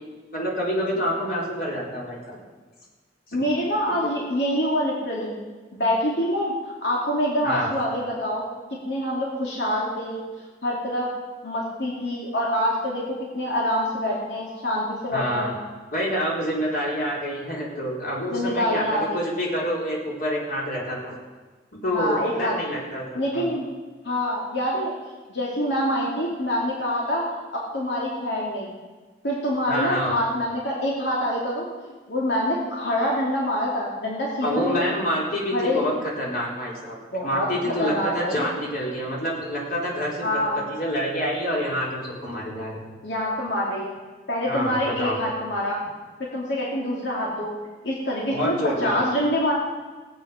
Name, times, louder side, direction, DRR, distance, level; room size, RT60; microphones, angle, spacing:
voice 1, 0.3-2.4 7.4-7.7 15.1-15.5 15.9-21.1 21.8-23.5 29.7-30.1 34.4-37.0 37.2-40.2 40.7-42.8 44.5-45.2 48.3-49.1, equal, 55° left, -4 dB, 4.0 m, -27 dB
voice 2, 3.3-5.3 5.7-8.4 8.9-10.2 10.6-11.1 11.4-15.5 18.3-19.2 21.9-22.5 23.1-23.6 24.0-24.9 25.3-27.3 27.5-28.7 29.2-34.9 35.5-35.9 37.1-38.5 40.2-40.6 43.0-43.9 44.3-45.8 46.2-47.5 47.8-49.5, equal, 80° left, -4 dB, 2.6 m, -26 dB
16.5 x 9.0 x 5.8 m, 1.3 s
head